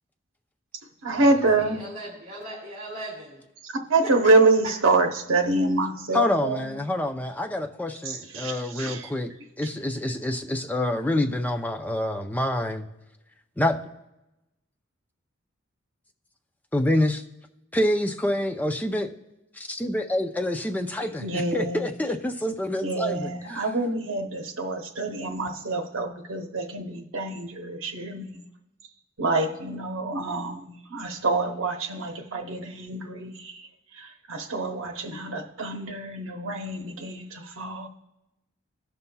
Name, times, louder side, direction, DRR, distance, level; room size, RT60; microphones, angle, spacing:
voice 1, 1.0-1.8 3.6-6.8 8.0-9.1 9.6-9.7 21.2-21.8 22.8-28.4 29.2-37.9, right 2 dB, 80° right, 0.9 m, -26 dB
voice 2, 1.5-3.4 4.0-4.4 4.6-4.7, right 2 dB, 40° right, 2.0 m, -38 dB
voice 3, 6.1-12.9 13.6-13.8 16.7-17.2 17.7-19.1 19.5-23.6, left 1 dB, 10° left, 0.4 m, -27 dB
16.5 x 5.5 x 2.2 m
head